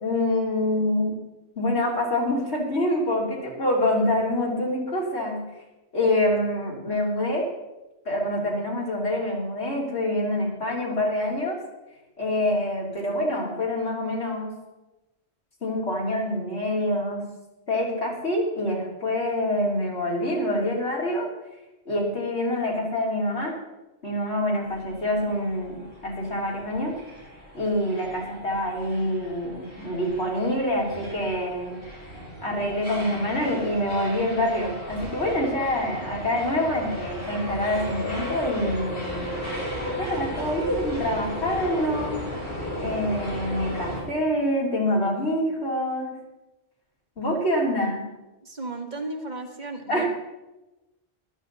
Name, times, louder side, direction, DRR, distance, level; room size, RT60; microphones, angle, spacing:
voice 1, 0.0-1.2 1.6-5.4 5.9-7.5 8.1-11.6 12.2-14.5 15.6-17.2 17.7-21.3 21.9-23.6 24.0-26.9 27.5-31.8 32.4-39.2 40.0-42.2 42.8-46.1 47.2-48.1 49.9-50.1, left 1 dB, 80° left, -3 dB, 3.8 m, -26 dB
sound 1, 24.6-44.0, equal, 55° left, 4.9 m, -35 dB
voice 2, 48.4-50.1, right 3 dB, 45° right, 3 dB, 1.5 m, -34 dB
14.0 x 13.0 x 4.1 m, 1.0 s
omnidirectional pair, 1.1 m